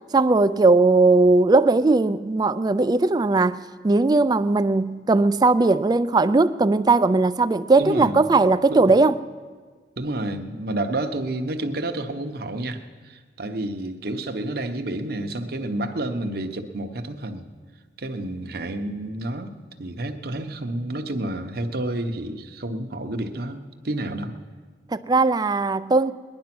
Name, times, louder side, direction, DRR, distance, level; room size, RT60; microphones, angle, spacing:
voice 1, 0.1-9.2 24.9-26.1, right 3 dB, 25° right, 0.3 m, -18 dB
voice 2, 7.8-8.2 8.7-8.9 10.0-17.4 18.0-19.5 19.8-23.6 23.8-24.3, right 1 dB, 60° right, 1.0 m, -29 dB
20.0 x 11.0 x 6.0 m
head